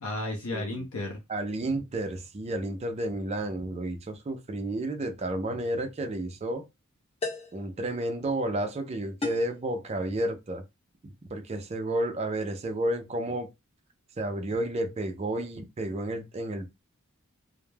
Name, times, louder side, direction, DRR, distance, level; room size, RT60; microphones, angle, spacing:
voice 1, 0.0-1.2, left 2 dB, 75° left, 0.6 m, -33 dB
voice 2, 0.5-0.9 1.3-6.7 7.5-10.6 11.0-13.5 14.2-16.7, right 1 dB, 30° right, 0.4 m, -31 dB
sound 1, 5.6-5.8 7.2-7.6 9.2-9.6, left 3 dB, 25° left, 0.6 m, -35 dB
2.2 x 2.0 x 3.1 m
head